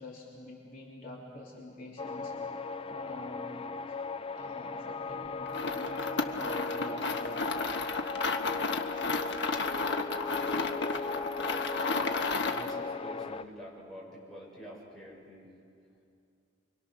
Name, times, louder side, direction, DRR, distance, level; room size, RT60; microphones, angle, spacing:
voice 1, 0.0-3.6 3.9-7.5, left 1 dB, 50° left, -4 dB, 3.5 m, -46 dB
sound 1, 2.0-13.4, left 4 dB, 30° left, 0.5 m, -37 dB
sound 2, 5.5-12.8, left 3 dB, 65° left, 1.3 m, -33 dB
voice 2, 12.5-15.5, equal, 5° left, -5 dB, 6.9 m, -47 dB
29.0 x 24.0 x 6.3 m, 2.5 s
head